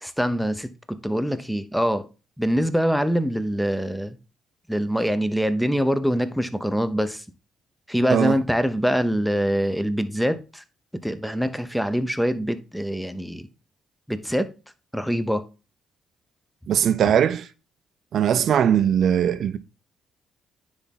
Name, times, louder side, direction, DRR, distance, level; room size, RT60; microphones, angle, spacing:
voice 1, 0.0-2.1 2.4-4.2 4.7-7.2 7.9-10.6 11.0-13.5 14.1-14.5 14.9-15.5, equal, ahead, 0.8 m, -24 dB
voice 2, 16.7-17.5 18.1-19.6, right 9 dB, 65° right, 0.6 m, -20 dB
9.8 x 3.6 x 4.1 m
cardioid pair, 90°, 0 cm